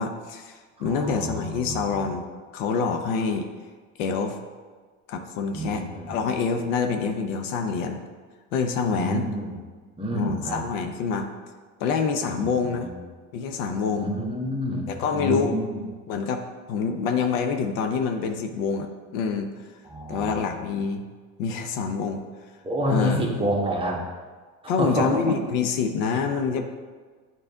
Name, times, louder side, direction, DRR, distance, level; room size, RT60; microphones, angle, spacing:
voice 1, 0.0-2.2 2.5-3.5 4.0-4.4 5.1-8.0 8.5-9.3 10.1-11.3 11.8-12.9 13.3-14.1 14.9-15.5 16.1-19.5 20.1-21.0 21.4-22.2 22.9-23.3 24.7-26.6, left 5 dB, 70° left, 6 dB, 0.8 m, -26 dB
voice 2, 0.8-2.0 5.5-6.1 8.9-9.5 10.0-10.6 12.3-13.0 14.0-15.8 19.8-20.6 22.6-24.0 24.6-25.3 26.1-26.2, right 1 dB, 10° right, -2 dB, 1.4 m, -29 dB
8.8 x 4.2 x 3.6 m, 1.5 s
supercardioid pair, 100°, 43 cm